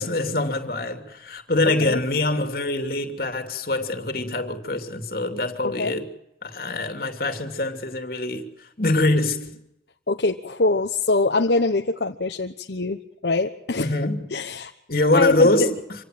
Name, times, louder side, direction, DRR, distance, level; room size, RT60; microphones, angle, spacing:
voice 1, 0.0-6.1 6.4-9.5 13.8-14.3 14.9-15.8, left 2 dB, 55° left, 2.8 m, -24 dB
voice 2, 10.1-13.9 14.3-14.7 15.1-15.5, left 3 dB, 75° left, 1.1 m, -23 dB
26.5 x 17.5 x 7.8 m
head